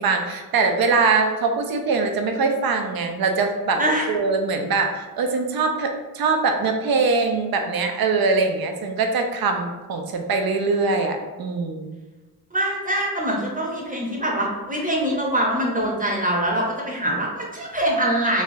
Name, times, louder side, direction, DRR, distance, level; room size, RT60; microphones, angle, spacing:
voice 1, 0.0-3.8 4.1-12.0, right 4 dB, 80° right, 4 dB, 0.5 m, -22 dB
voice 2, 12.5-18.4, right 1 dB, 25° right, -2 dB, 0.7 m, -23 dB
3.2 x 2.3 x 2.6 m, 1.2 s
cardioid pair, 60°, 36 cm